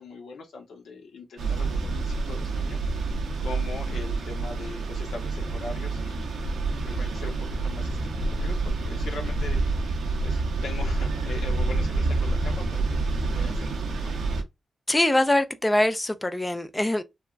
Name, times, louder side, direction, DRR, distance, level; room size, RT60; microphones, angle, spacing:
voice 1, 0.0-2.8 3.4-6.4 6.6-9.9 10.2-14.1, left 3 dB, 85° left, 0.7 m, -41 dB
sound 1, 1.4-14.4, right 3 dB, 85° right, 0.6 m, -28 dB
voice 2, 14.9-17.0, left 1 dB, 15° left, 0.3 m, -23 dB
3.3 x 2.1 x 2.4 m
wide cardioid pair, 135°, 0 cm